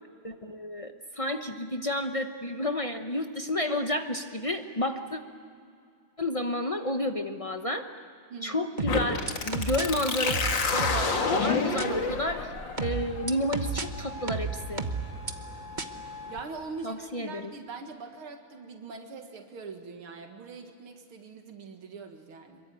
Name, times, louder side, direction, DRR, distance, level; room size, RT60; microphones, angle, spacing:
voice 1, 0.2-5.2 6.2-7.9 8.4-12.5 12.8-14.8 16.8-17.5, left 1 dB, 45° left, 6 dB, 0.4 m, -31 dB
voice 2, 8.3-8.7 16.3-22.6, right 4 dB, 90° right, 4 dB, 2.6 m, -42 dB
sound 1, 8.8-9.8 10.3-11.1 11.8-11.9 12.8-13.8 14.3-15.3 15.8-15.9, right 4 dB, 30° right, 0.9 m, -31 dB
sound 2, 8.9-16.4, left 4 dB, 60° left, 2.6 m, -31 dB
26.0 x 23.0 x 9.1 m, 2.3 s
omnidirectional pair, 2.3 m